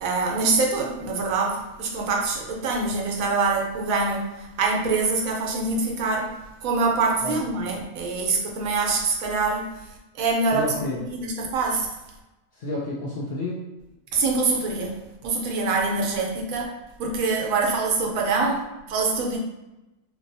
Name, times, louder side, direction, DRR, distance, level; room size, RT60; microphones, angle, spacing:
voice 1, 0.0-9.9 10.1-11.9 14.1-16.7 17.0-19.4, right 3 dB, 75° right, 0 dB, 1.1 m, -25 dB
voice 2, 10.5-11.0 12.5-13.6, left 2 dB, 60° left, -4 dB, 0.7 m, -30 dB
3.1 x 2.6 x 2.6 m, 0.99 s
omnidirectional pair, 1.5 m